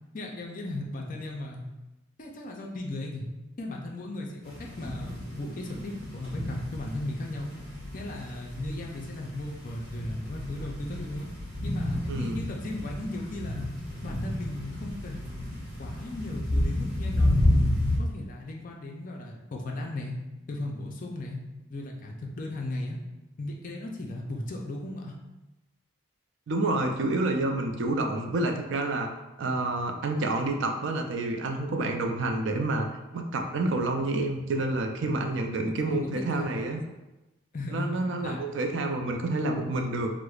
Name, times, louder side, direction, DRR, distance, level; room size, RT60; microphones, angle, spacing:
voice 1, 0.1-1.6 2.2-3.2 3.6-7.6 7.9-11.3 11.6-13.7 14.0-15.5 15.8-17.5 18.0-20.1 20.5-21.4 21.7-23.0 23.4-25.1 35.2-35.3 35.8-36.7 37.5-38.4, left 2 dB, 40° left, 0 dB, 0.4 m, -36 dB
sound 1, 4.4-18.0, left 1 dB, 45° right, 1.2 m, -31 dB
voice 2, 12.1-12.4 26.5-29.1 29.4-32.9 33.1-36.8 37.7-40.1, right 2 dB, 60° right, 4 dB, 0.3 m, -28 dB
4.6 x 2.0 x 2.3 m, 1.0 s
head